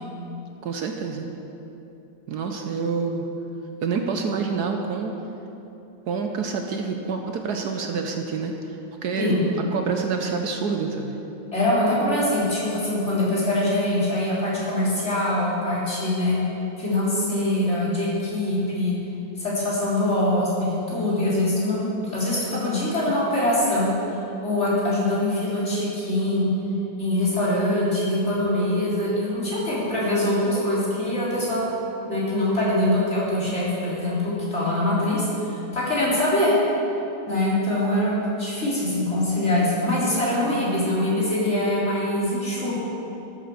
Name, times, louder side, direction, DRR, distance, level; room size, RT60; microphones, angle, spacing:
voice 1, 0.6-1.3 2.3-3.3 3.8-5.1 6.1-11.2, right 5 dB, 65° right, 3 dB, 1.3 m, -27 dB
voice 2, 11.5-16.4 16.8-18.9 19.4-23.9 24.4-26.5 27.0-31.6 32.1-36.5 37.3-42.8, left 1 dB, 35° left, -8 dB, 3.8 m, -23 dB
13.0 x 7.7 x 6.8 m, 2.9 s
omnidirectional pair, 1.9 m